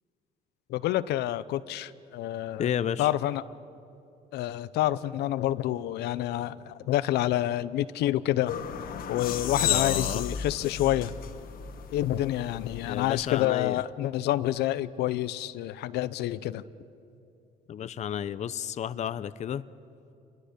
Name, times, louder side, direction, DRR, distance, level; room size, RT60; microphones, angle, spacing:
voice 1, 0.7-2.7 3.0-3.4 4.3-8.5 9.1-11.1 11.9-16.6, left 14 dB, 80° left, 15 dB, 0.6 m, -28 dB
voice 2, 2.6-3.1 9.6-10.2 12.8-13.8 17.7-19.6, left 9 dB, 45° left, 15 dB, 0.6 m, -32 dB
sound 1, 8.5-13.4, left 9 dB, 60° left, 1.5 m, -33 dB
27.5 x 21.5 x 6.7 m, 2.7 s
cardioid pair, 110°, 17 cm